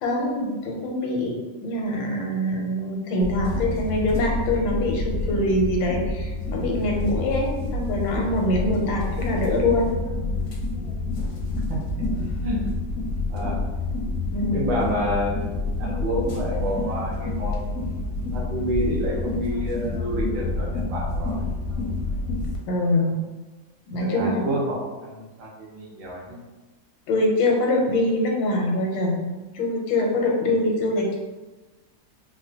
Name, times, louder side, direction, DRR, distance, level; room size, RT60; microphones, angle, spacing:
voice 1, 0.0-9.9 14.3-14.8 22.7-23.2 23.9-24.4 27.1-31.2, left 1 dB, 85° left, 0 dB, 1.5 m, -24 dB
sound 1, 3.2-22.6, left 2 dB, 70° left, 0.8 m, -28 dB
voice 2, 11.2-12.1 12.4-12.7 13.3-13.6 14.5-17.8 18.3-21.4 24.0-26.4, equal, 75° right, -4 dB, 1.6 m, -29 dB
4.0 x 2.2 x 2.7 m, 1.2 s
omnidirectional pair, 2.0 m